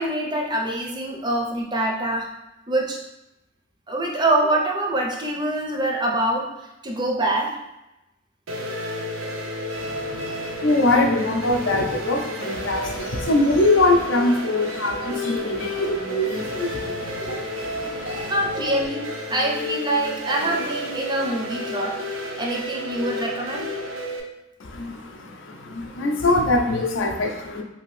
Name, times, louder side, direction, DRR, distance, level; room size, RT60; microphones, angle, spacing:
voice 1, 0.0-2.3 2.7-3.0 3.9-6.5 6.8-7.6 15.0-15.1 17.3-17.4 18.2-22.0 22.4-23.7, right 1 dB, 20° right, 0 dB, 0.5 m, -25 dB
sound 1, 8.5-24.2, left 1 dB, 90° right, 0.5 m, -31 dB
voice 2, 9.8-18.3 24.6-27.6, left 2 dB, 70° left, 3 dB, 0.5 m, -23 dB
2.8 x 2.6 x 3.1 m, 0.90 s
head